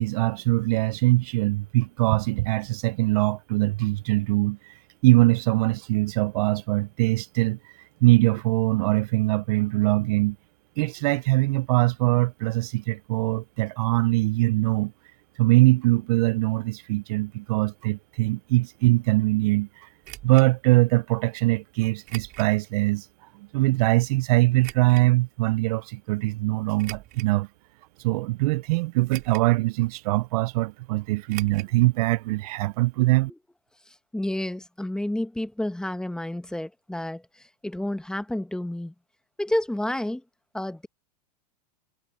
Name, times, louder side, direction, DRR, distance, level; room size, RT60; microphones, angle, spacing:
voice 1, 0.0-4.7 5.0-7.7 8.0-10.4 10.8-14.9 15.4-19.9 20.2-23.1 23.3-27.5 28.0-33.3, right 20 dB, 65° right, 0.5 m, -22 dB
sound 1, 20.0-20.5 22.0-22.5 23.1-23.2 24.6-25.1 26.8-27.4 28.0-28.1 29.1-29.6 29.8-29.9 31.3-31.7 32.0-32.1 32.4-32.5, right 17 dB, 45° right, 4.2 m, -41 dB
voice 2, 33.9-38.9 39.4-40.2 40.5-40.9, left 1 dB, 5° left, 1.2 m, -30 dB
hypercardioid pair, 110°, 21 cm